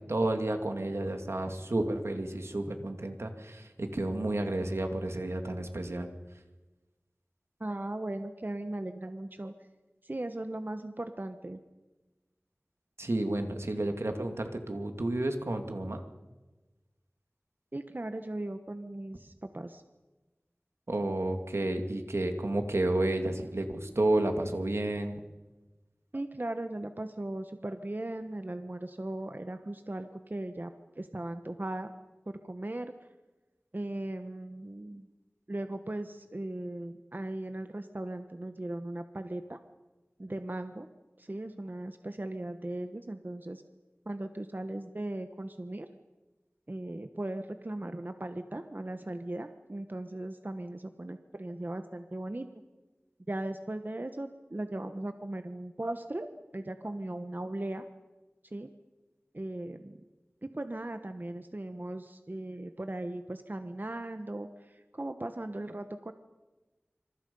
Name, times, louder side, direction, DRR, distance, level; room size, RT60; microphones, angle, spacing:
voice 1, 0.0-6.1 13.0-16.0 20.9-25.2, right 1 dB, 80° right, 5 dB, 2.5 m, -31 dB
voice 2, 7.6-9.5 10.0-11.6 17.7-19.8 26.1-30.7 31.0-31.9 32.3-32.9 33.7-35.1 35.5-39.6 40.2-40.9 41.2-43.6 44.1-45.9 46.7-52.5 53.3-57.8 58.4-58.7 59.3-60.0 60.4-66.1, right 1 dB, 45° right, 8 dB, 1.2 m, -38 dB
26.0 x 26.0 x 5.5 m, 1.2 s
wide cardioid pair, 45°, 4 cm